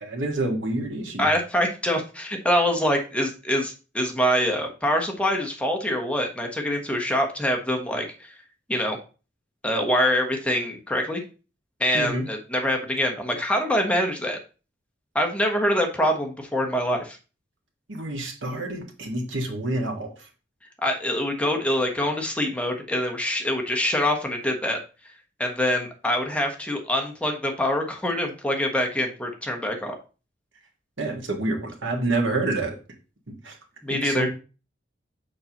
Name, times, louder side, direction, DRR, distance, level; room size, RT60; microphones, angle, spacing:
voice 1, 0.0-1.2 11.9-12.2 17.9-20.1 31.0-32.7 33.3-33.5 34.0-34.3, right 2 dB, 80° right, 1 dB, 1.6 m, -28 dB
voice 2, 1.2-8.3 8.7-9.0 9.6-11.2 11.8-14.4 15.1-17.2 20.8-24.8 25.4-29.9 33.8-34.3, equal, 5° left, 2 dB, 1.0 m, -25 dB
6.7 x 5.4 x 2.9 m, 0.34 s
head